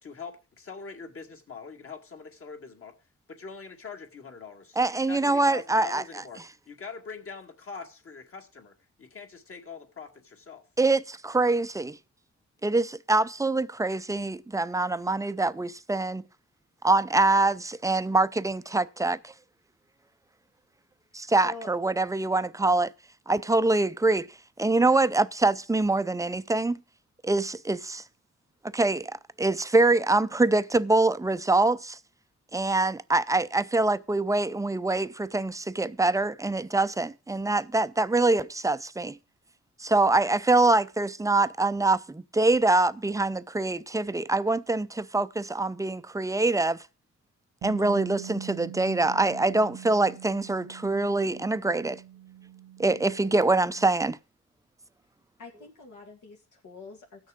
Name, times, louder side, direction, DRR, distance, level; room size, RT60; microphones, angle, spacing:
voice 1, 0.0-3.0 3.3-4.8 5.1-10.7, left 5 dB, 50° left, 2.2 m, -43 dB
voice 2, 4.8-6.0 10.8-12.0 12.6-16.2 16.8-19.3 21.1-22.9 23.3-24.3 24.6-26.8 27.2-28.0 28.7-32.0 32.5-39.2 39.8-46.8 47.6-52.0 52.8-54.2, right 2 dB, 10° right, 0.5 m, -24 dB
Bass guitar, 47.6-53.9, right 12 dB, 65° right, 0.8 m, -44 dB
voice 3, 55.4-57.3, left 3 dB, 80° left, 2.2 m, -45 dB
15.5 x 6.5 x 5.0 m
cardioid pair, 110°, 29 cm